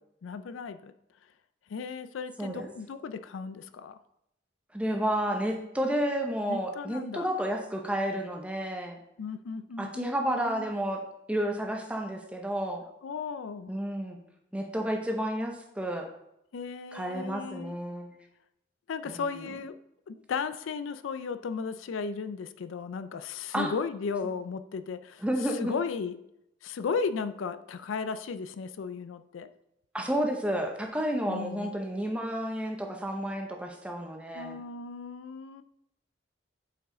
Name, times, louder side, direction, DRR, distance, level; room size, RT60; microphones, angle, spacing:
voice 1, 0.2-0.9 1.7-4.0 6.5-7.3 9.2-10.7 13.0-13.7 16.5-17.7 18.9-19.8 20.1-25.2 25.5-26.2 26.6-29.5 31.3-31.7 34.3-35.6, left 5 dB, 85° left, 12 dB, 0.4 m, -35 dB
voice 2, 4.7-9.0 9.8-11.0 11.3-12.8 13.7-14.2 14.5-16.1 16.9-18.2 19.1-19.5 23.5-23.7 25.2-25.7 29.9-34.6, equal, 5° right, 2 dB, 0.7 m, -31 dB
8.0 x 4.7 x 3.7 m, 0.82 s
head